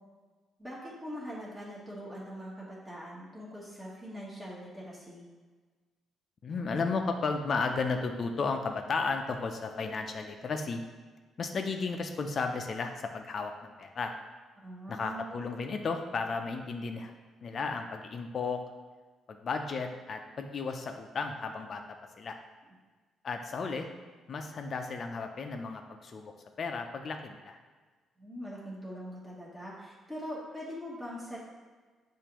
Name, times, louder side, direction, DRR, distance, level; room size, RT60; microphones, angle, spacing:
voice 1, 0.6-5.2 14.6-15.3 28.2-31.4, equal, 15° right, -6 dB, 1.2 m, -42 dB
voice 2, 6.4-10.8 11.4-14.1 14.9-17.1 17.4-18.6 19.3-21.8 22.2-22.4 23.2-23.9 24.3-26.3 26.6-27.6, left 4 dB, 50° left, 5 dB, 0.5 m, -34 dB
6.7 x 2.5 x 3.0 m, 1.4 s
cardioid pair, 90°, 0 cm